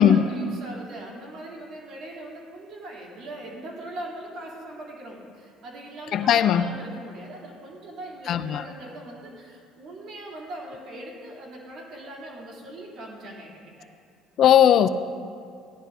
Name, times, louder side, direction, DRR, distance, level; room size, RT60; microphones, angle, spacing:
voice 1, 0.0-13.9, right 1 dB, 60° right, -3 dB, 3.1 m, -40 dB
voice 2, 6.1-6.8 8.3-8.6 14.4-14.9, left 9 dB, 55° left, 13 dB, 0.4 m, -18 dB
16.0 x 11.0 x 2.7 m, 2.4 s
supercardioid pair, 100°, 0 cm